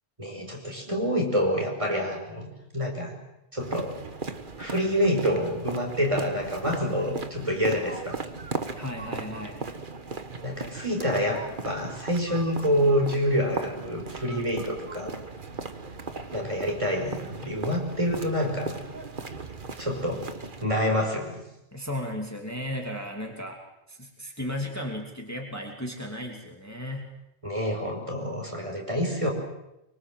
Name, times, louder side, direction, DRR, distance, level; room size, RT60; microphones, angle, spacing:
voice 1, 0.2-3.1 3.5-3.9 4.6-8.2 10.4-15.1 16.3-18.8 19.8-20.2 20.6-21.4 27.4-29.3, equal, 30° right, 1 dB, 5.5 m, -27 dB
sound 1, 3.6-20.6, right 3 dB, 50° right, 1.7 m, -38 dB
voice 2, 8.8-9.6 21.7-23.6 23.9-27.1, left 1 dB, 15° left, 1 dB, 2.8 m, -35 dB
24.5 x 24.5 x 7.6 m, 0.88 s
omnidirectional pair, 1.1 m